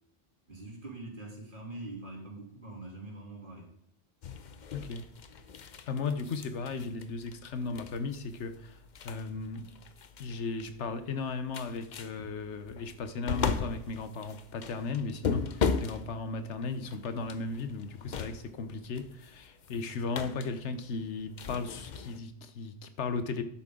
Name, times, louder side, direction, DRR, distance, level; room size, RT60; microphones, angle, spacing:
voice 1, 0.5-3.7, right 2 dB, 50° right, 2.9 m, -43 dB
sound 1, 4.2-22.2, left 5 dB, 50° left, 0.7 m, -38 dB
voice 2, 4.7-5.1 5.6-9.7 10.2-23.4, left 4 dB, 85° left, 1.2 m, -36 dB
10.5 x 8.4 x 3.8 m
omnidirectional pair, 1.2 m